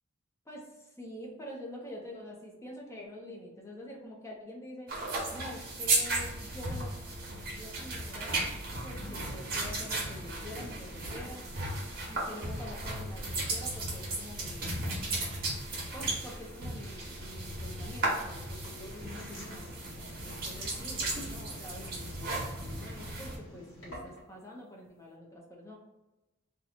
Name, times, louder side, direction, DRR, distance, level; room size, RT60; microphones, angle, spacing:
voice 1, 0.5-4.9 5.3-6.9 7.5-8.3 8.8-11.5 12.1-14.8 15.9-19.7 20.2-25.8, left 1 dB, 15° left, -2 dB, 0.6 m, -46 dB
sound 1, 4.9-23.4, right 2 dB, 45° right, 1.0 m, -35 dB
sound 2, 18.6-24.4, equal, 80° left, 1.4 m, -49 dB
2.8 x 2.3 x 4.0 m, 1.0 s
head